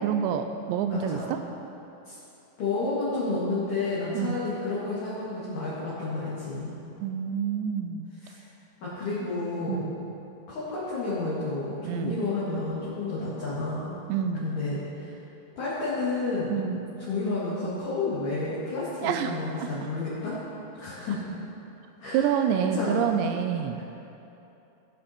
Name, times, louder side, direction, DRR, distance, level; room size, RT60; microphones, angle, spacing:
voice 1, 0.0-1.4 4.1-4.4 7.0-8.1 9.7-9.9 11.8-12.2 14.1-14.5 16.5-16.8 19.0-19.7 22.1-23.8, right 8 dB, 85° right, 7 dB, 2.5 m, -27 dB
voice 2, 0.9-1.3 2.0-2.2 2.6-6.8 8.1-8.4 8.8-9.8 10.5-14.0 14.4-15.2 15.6-16.5 17.0-20.4 20.8-21.2 22.0-22.3 22.7-23.0 23.7-23.8, left 3 dB, 50° left, -11 dB, 3.2 m, -31 dB
17.5 x 7.7 x 4.3 m, 2.9 s
omnidirectional pair, 5.6 m